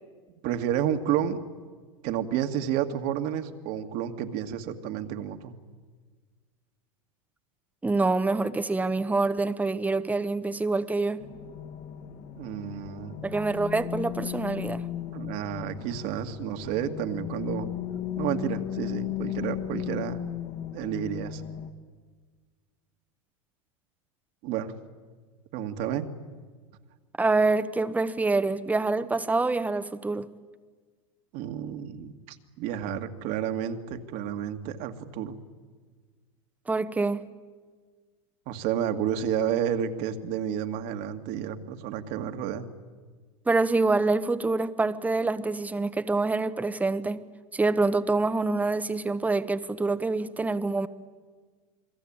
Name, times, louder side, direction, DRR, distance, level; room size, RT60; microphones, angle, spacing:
voice 1, 0.4-1.4 2.0-5.5 12.3-13.2 15.1-17.7 18.2-20.2 20.7-21.4 24.4-24.7 25.5-26.1 31.3-35.4 38.5-42.7, right 9 dB, 55° right, 7 dB, 2.1 m, -31 dB
voice 2, 7.8-11.2 13.2-14.8 27.2-30.3 36.7-37.3 43.5-47.2 47.5-50.9, right 3 dB, 10° right, 13 dB, 1.1 m, -26 dB
sound 1, 11.2-21.7, left 11 dB, 50° left, 2.2 m, -36 dB
28.5 x 21.0 x 8.9 m, 1.5 s
hypercardioid pair, 110°, 18 cm